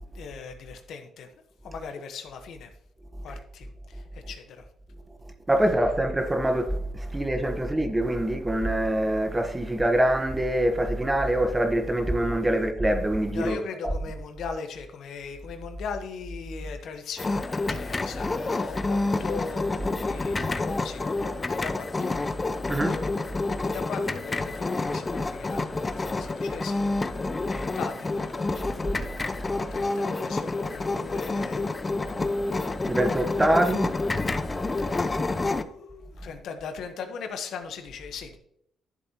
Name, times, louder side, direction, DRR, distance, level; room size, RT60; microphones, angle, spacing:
voice 1, 0.1-1.3 1.6-2.7 3.2-4.6 12.4-12.7 13.3-22.2 22.7-26.9 27.5-29.1 29.7-31.6 35.4-38.4, left 5 dB, 75° left, 1.2 m, -39 dB
voice 2, 5.5-13.6 22.6-23.0 23.5-23.6 29.4-29.5 32.9-34.0 34.3-34.9, right 1 dB, 15° right, 1.2 m, -25 dB
sound 1, 17.2-35.6, left 3 dB, 25° left, 0.6 m, -28 dB
11.5 x 7.0 x 3.0 m
cardioid pair, 90°, 0 cm